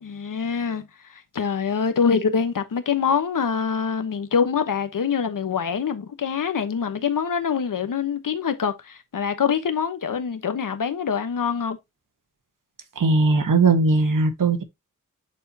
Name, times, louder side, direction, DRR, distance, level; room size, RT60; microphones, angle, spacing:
voice 1, 0.0-0.8 1.1-11.8, left 6 dB, 80° left, 1.1 m, -25 dB
voice 2, 13.0-14.6, right 3 dB, 75° right, 1.4 m, -19 dB
9.8 x 4.4 x 2.8 m
wide cardioid pair, 105°, 32 cm